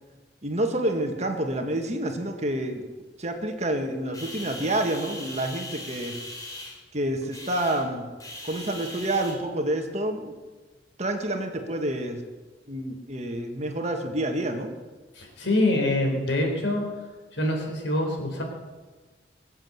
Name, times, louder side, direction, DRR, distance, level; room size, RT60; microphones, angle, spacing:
voice 1, 0.4-2.8 3.2-6.2 6.9-8.1 8.4-10.3 11.0-12.2 12.7-14.7, right 1 dB, 40° right, 4 dB, 1.7 m, -28 dB
sound 1, 4.1-9.3, left 1 dB, 20° left, 3.3 m, -40 dB
voice 2, 15.2-16.8 17.3-18.4, left 1 dB, 90° left, 2 dB, 3.9 m, -25 dB
22.5 x 7.8 x 7.9 m, 1.3 s
head